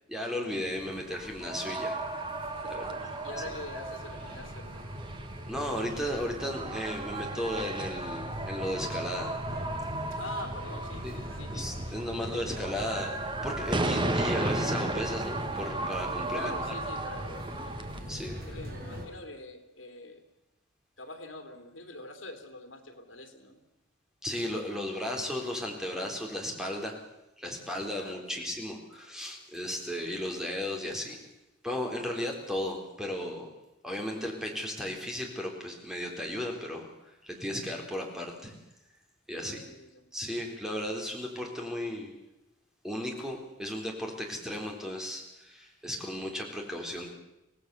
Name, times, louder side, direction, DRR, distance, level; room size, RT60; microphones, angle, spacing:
voice 1, 0.1-2.0 2.6-2.8 5.5-9.6 11.0-11.2 11.5-13.1 13.4-16.6 18.1-18.4 24.2-27.0 27.4-31.2 31.6-33.5 33.8-36.9 37.2-38.5 39.3-39.6 40.1-42.1 42.8-47.1, left 1 dB, 5° right, 1 dB, 3.7 m, -35 dB
sound 1, 0.6-19.1, equal, 50° right, 6.1 m, -41 dB
sound 2, 1.4-18.0, right 2 dB, 25° right, 1.5 m, -35 dB
voice 2, 2.6-4.9 10.1-13.1 16.3-17.6 17.9-20.2 21.0-23.6 27.9-28.5 39.3-40.0, left 2 dB, 75° left, 7 dB, 3.1 m, -45 dB
25.0 x 18.0 x 6.9 m, 0.92 s
head